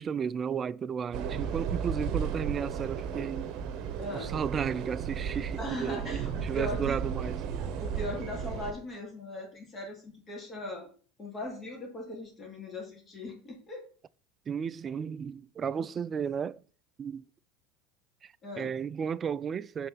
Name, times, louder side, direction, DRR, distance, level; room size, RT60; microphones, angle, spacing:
voice 1, 0.0-3.6 4.1-7.4 14.5-16.6 17.0-17.3 18.2-19.9, right 7 dB, 35° right, 0.3 m, -34 dB
sound 1, 1.1-8.7, right 7 dB, 55° right, 0.9 m, -34 dB
voice 2, 4.0-4.3 5.6-7.0 7.8-10.9 11.2-13.8 18.4-18.7, left 1 dB, 30° left, 2.6 m, -39 dB
5.4 x 3.9 x 5.9 m
hypercardioid pair, 85°, 0 cm